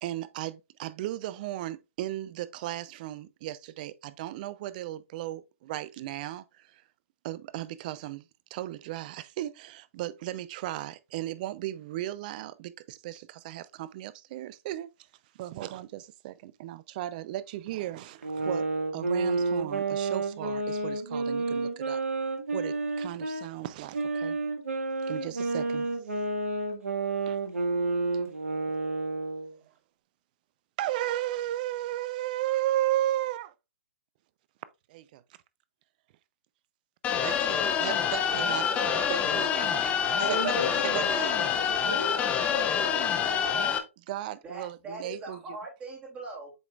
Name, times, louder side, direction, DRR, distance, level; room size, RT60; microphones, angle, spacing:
voice 1, 0.0-6.8 7.2-14.9 15.3-18.7 18.9-22.0 22.5-24.4 25.1-25.9 27.3-27.4 30.8-33.5 34.9-35.2 37.2-38.7 39.1-39.8 40.3-40.5 40.8-41.4 44.1-45.6, right 14 dB, 35° right, 0.5 m, -35 dB
sound 1, 18.2-23.5 23.9-29.5, right 3 dB, 75° right, 1.8 m, -30 dB
sound 2, 37.0-43.8, left 8 dB, 15° left, 0.7 m, -27 dB
voice 2, 38.0-39.0 39.5-40.4 41.2-41.3 44.4-46.5, right 3 dB, 15° right, 2.9 m, -42 dB
voice 3, 40.2-43.8, left 1 dB, 75° left, 2.8 m, -36 dB
7.9 x 4.9 x 2.4 m
figure-of-eight pair, 130°, 8 cm